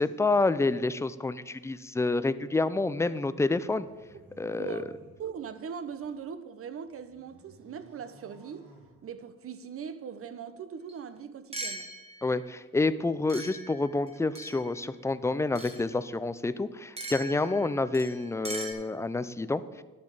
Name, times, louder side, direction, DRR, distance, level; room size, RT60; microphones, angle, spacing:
voice 1, 0.0-3.9 4.4-4.8 12.2-19.6, left 3 dB, 10° left, 0.4 m, -28 dB
sound 1, 3.6-6.2 6.7-9.5, right 2 dB, 85° right, 2.6 m, -58 dB
voice 2, 4.4-4.9 5.2-8.7 9.0-11.9, right 7 dB, 50° right, 0.8 m, -40 dB
Indoor Wine Glass Clink Together, 10.9-11.0 11.5-12.4 13.3-14.8 15.6-15.9 17.0-18.7, right 2 dB, 20° right, 1.5 m, -40 dB
11.5 x 6.9 x 5.0 m
cardioid pair, 90°, 30 cm